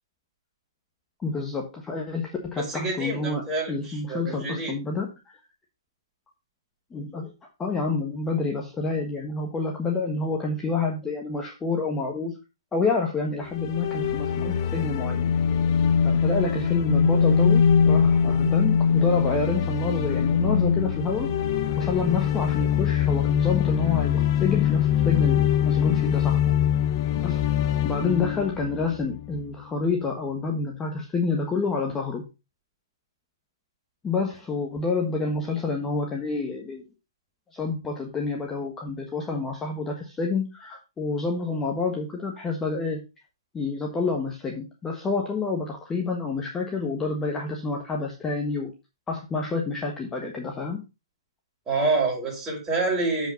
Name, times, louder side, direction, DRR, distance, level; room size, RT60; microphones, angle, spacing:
voice 1, 1.2-5.1 6.9-7.3 7.6-12.3 12.7-15.3 16.0-21.3 21.8-26.4 27.2-27.4 27.8-32.2 34.0-36.8 37.5-43.0 43.5-48.7 49.1-50.8, left 4 dB, 10° left, 1 dB, 1.3 m, -28 dB
voice 2, 2.6-4.7 51.7-53.3, right 3 dB, 15° right, -3 dB, 5.8 m, -27 dB
sound 1, 13.5-29.6, left 7 dB, 40° left, 1.1 m, -23 dB
7.6 x 5.2 x 5.2 m, 0.28 s
hypercardioid pair, 140°, 3 cm